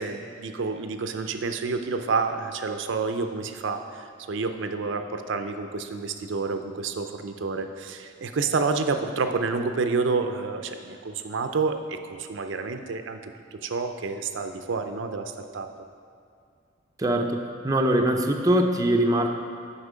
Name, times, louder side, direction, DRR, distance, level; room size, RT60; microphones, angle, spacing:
voice 1, 0.0-15.7, right 4 dB, 70° right, 7 dB, 0.5 m, -29 dB
voice 2, 17.0-17.4 17.6-19.3, right 1 dB, 20° right, 2 dB, 0.5 m, -22 dB
8.1 x 5.9 x 5.0 m, 2.4 s
head